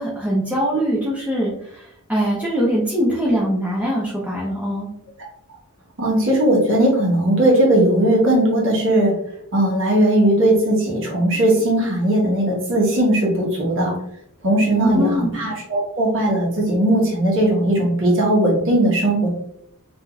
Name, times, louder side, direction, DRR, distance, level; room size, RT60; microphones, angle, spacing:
voice 1, 0.0-4.9 14.8-15.3, equal, 5° right, -6 dB, 0.6 m, -22 dB
voice 2, 6.0-9.1 9.5-13.9 14.4-19.3, right 1 dB, 60° right, -2 dB, 1.1 m, -18 dB
3.5 x 2.7 x 2.3 m, 0.75 s
head